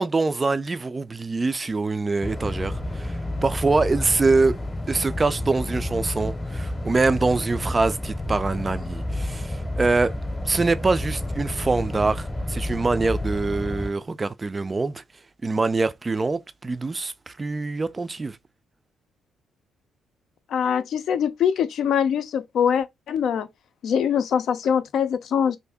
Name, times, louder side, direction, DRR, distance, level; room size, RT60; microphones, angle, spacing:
voice 1, 0.0-4.6 4.9-10.1 10.5-15.0 15.4-18.4, right 3 dB, 25° right, 0.3 m, -24 dB
sound 1, 2.2-13.9, left 1 dB, 15° left, 0.7 m, -30 dB
voice 2, 20.5-23.5 23.8-25.6, left 8 dB, 70° left, 0.4 m, -23 dB
2.7 x 2.5 x 3.4 m
cardioid pair, 90°, 0 cm